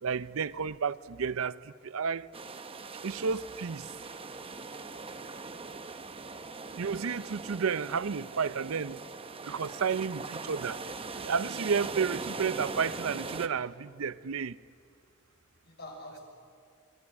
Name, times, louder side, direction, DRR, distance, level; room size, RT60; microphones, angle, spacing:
voice 1, 0.0-2.3 3.0-3.9 6.7-9.0 9.4-10.8 11.1-14.6, right 6 dB, 75° right, 0.6 m, -31 dB
sound 1, 2.3-13.5, right 3 dB, 25° right, 0.9 m, -41 dB
voice 2, 5.3-5.9 6.8-6.9 7.2-7.3 15.6-16.2, left 1 dB, 50° left, 6.5 m, -49 dB
26.5 x 19.5 x 9.7 m
head